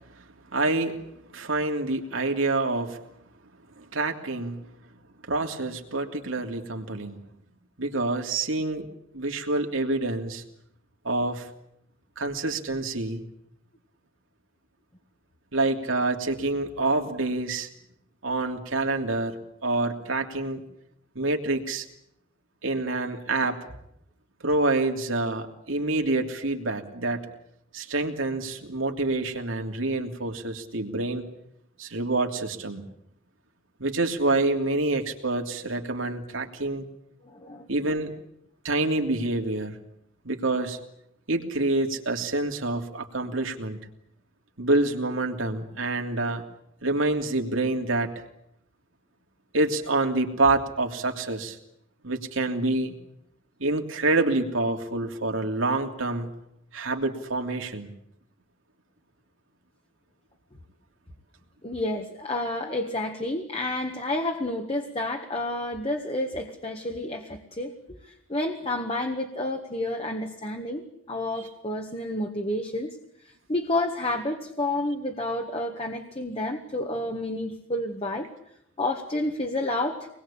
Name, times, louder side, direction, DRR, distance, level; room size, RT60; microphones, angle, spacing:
voice 1, 0.5-1.0 1.3-3.0 3.8-4.6 5.2-7.2 7.8-8.9 9.1-10.4 11.0-11.5 12.2-13.2 15.5-17.7 18.2-20.6 21.1-21.9 22.6-23.6 24.4-27.3 27.7-31.3 31.8-32.8 33.8-36.8 37.7-38.1 38.6-39.8 40.2-40.8 41.3-43.8 44.6-46.4 46.8-48.1 49.5-51.6 52.0-52.9 53.6-56.3 56.7-57.9, right 2 dB, 85° right, 3 dB, 3.0 m, -27 dB
voice 2, 37.2-37.7 61.6-73.0 73.2-78.3 78.8-80.1, left 1 dB, 30° left, 4 dB, 1.7 m, -30 dB
25.5 x 21.0 x 8.8 m, 0.76 s
head